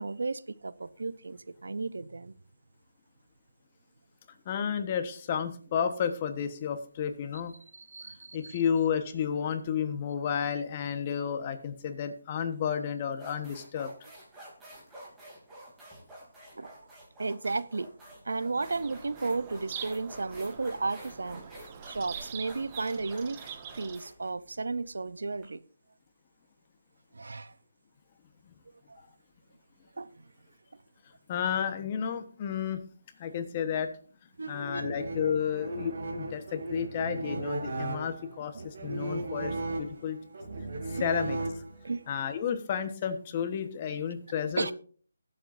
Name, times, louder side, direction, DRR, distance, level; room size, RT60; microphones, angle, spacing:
voice 1, 0.0-2.3 7.7-8.6 16.6-16.8 17.2-17.9 18.2-21.5 21.8-23.4 23.8-25.6 27.1-27.5 28.7-29.0 30.0-30.3 34.4-34.9 41.0-41.1 41.8-42.0 44.6-44.7, right 3 dB, 80° right, 0.8 m, -34 dB
voice 2, 4.4-7.5 8.3-13.9 31.3-32.8 33.2-33.9 34.5-40.2 40.9-41.6 42.1-44.7, left 7 dB, 25° left, 1.2 m, -32 dB
sound 1, 12.5-12.7 13.1-25.4, right 1 dB, 5° right, 3.1 m, -50 dB
Bird vocalization bird call bird song, 18.5-24.0, right 8 dB, 25° right, 0.9 m, -44 dB
sound 2, 34.5-42.0, right 2 dB, 55° right, 3.1 m, -36 dB
21.5 x 7.7 x 2.7 m
hypercardioid pair, 165°, 0 cm